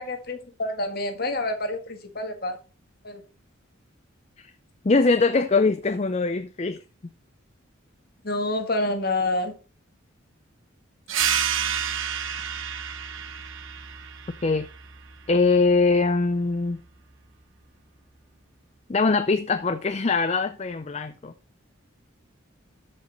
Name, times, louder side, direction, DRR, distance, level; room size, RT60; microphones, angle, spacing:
voice 1, 0.0-2.6 3.0-3.2 8.2-9.5, left 2 dB, 50° left, 1.7 m, -28 dB
voice 2, 4.8-6.8 14.4-14.7 15.3-16.8 18.9-21.3, left 3 dB, 30° left, 0.4 m, -22 dB
sound 1, 11.1-16.3, right 8 dB, 75° right, 1.2 m, -30 dB
13.0 x 5.3 x 4.0 m
head